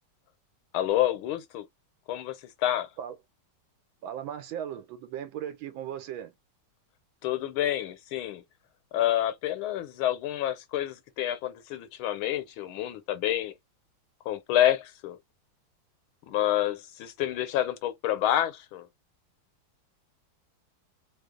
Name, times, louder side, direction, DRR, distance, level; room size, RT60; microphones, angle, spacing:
voice 1, 0.7-1.6 2.1-2.9 7.2-8.4 8.9-13.5 14.2-15.2 16.3-18.9, left 12 dB, 85° left, 1.5 m, -28 dB
voice 2, 4.0-6.3, right 10 dB, 80° right, 1.4 m, -37 dB
3.4 x 2.0 x 3.6 m
omnidirectional pair, 2.3 m